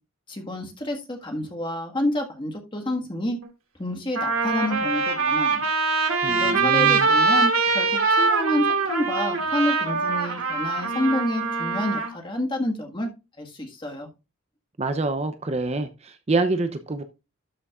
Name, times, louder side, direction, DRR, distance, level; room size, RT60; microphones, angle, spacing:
voice 1, 0.3-3.4 3.8-5.6 6.0-13.1 13.4-14.1, left 1 dB, 20° left, 1.6 m, -28 dB
Trumpet, 3.4-3.5 4.1-12.1, right 4 dB, 80° right, 2.2 m, -23 dB
voice 2, 6.2-7.1 14.8-17.0, right 3 dB, 30° right, 0.6 m, -26 dB
12.5 x 6.1 x 2.4 m
head